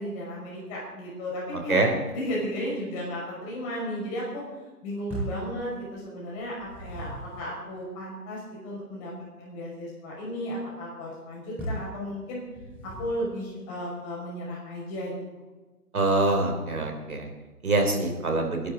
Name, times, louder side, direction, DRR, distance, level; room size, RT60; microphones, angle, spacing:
voice 1, 0.0-4.4 4.8-9.1 9.4-12.4 12.8-15.1, equal, 20° left, -4 dB, 5.8 m, -34 dB
voice 2, 1.5-1.9 15.9-17.3 17.6-18.6, right 2 dB, 65° right, 3 dB, 3.4 m, -24 dB
sound 1, 5.1-5.5 6.4-7.4 11.6-12.0 12.5-13.3, right 2 dB, 5° right, 6.3 m, -36 dB
28.5 x 11.0 x 3.9 m, 1.2 s
figure-of-eight pair, 145°, 46 cm